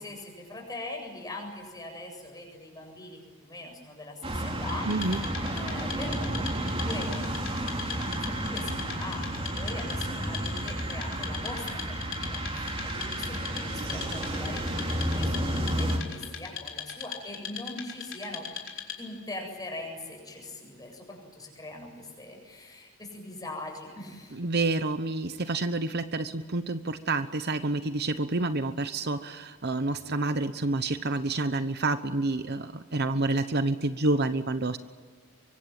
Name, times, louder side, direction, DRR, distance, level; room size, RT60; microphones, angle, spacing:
voice 1, 0.0-18.5 19.0-24.4, left 2 dB, 20° left, 2 dB, 7.6 m, -42 dB
sound 1, 4.2-16.0, right 1 dB, 25° right, 4.0 m, -31 dB
Wood, 4.7-19.2, left 8 dB, 60° left, 4.7 m, -40 dB
voice 2, 4.8-5.2 24.3-34.8, right 2 dB, 50° right, 11 dB, 1.0 m, -28 dB
24.5 x 24.5 x 8.9 m, 1.5 s
head